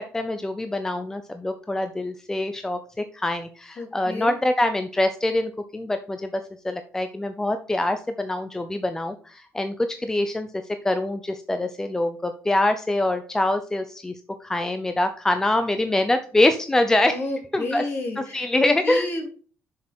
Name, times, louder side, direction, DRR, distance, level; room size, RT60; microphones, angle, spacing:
voice 1, 0.0-10.5 10.8-14.1 14.4-17.2 17.5-17.8 18.2-19.0, left 1 dB, 10° left, 8 dB, 0.7 m, -24 dB
voice 2, 3.8-4.3 17.1-19.3, left 2 dB, 45° left, 2 dB, 3.0 m, -30 dB
6.9 x 6.5 x 4.4 m, 0.40 s
cardioid pair, 135°, 5 cm